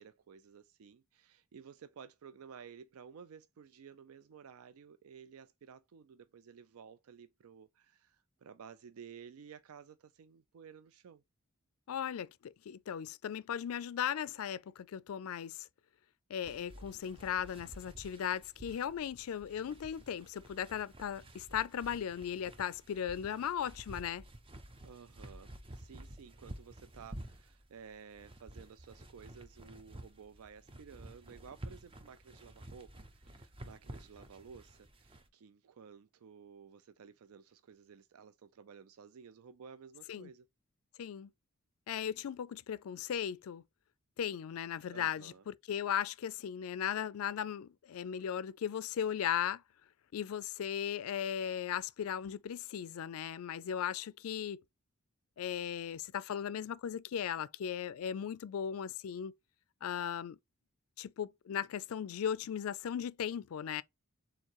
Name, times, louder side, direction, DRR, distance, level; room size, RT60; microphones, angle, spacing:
voice 1, 0.0-11.2 24.8-40.5 44.9-45.5, right 6 dB, 70° right, 0.4 m, -54 dB
voice 2, 11.9-15.7 16.3-24.2 40.1-40.3 41.0-41.3 41.9-43.6 44.2-49.6 50.1-54.6 55.4-59.3 59.8-60.4 61.0-63.8, left 9 dB, 70° left, 0.3 m, -37 dB
sound 1, 16.4-35.3, right 1 dB, 25° right, 0.6 m, -51 dB
4.5 x 3.7 x 2.9 m
head